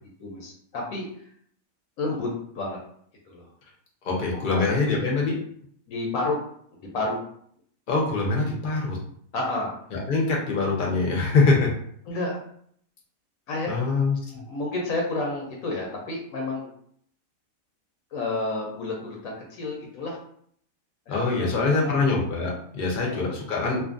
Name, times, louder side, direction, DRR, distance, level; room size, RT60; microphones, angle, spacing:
voice 1, 0.2-1.1 2.0-2.8 3.3-3.5 4.4-4.6 5.9-6.5 6.8-7.2 9.3-9.8 12.1-12.5 13.5-13.8 14.3-16.7 18.1-20.2 21.1-21.5 21.8-22.0 23.0-23.3, left 2 dB, 80° left, -1 dB, 1.0 m, -30 dB
voice 2, 4.0-5.4 7.9-9.0 9.9-11.7 13.7-14.2 21.1-23.8, left 3 dB, 50° left, -1 dB, 0.7 m, -24 dB
2.5 x 2.5 x 2.4 m, 0.64 s
omnidirectional pair, 1.4 m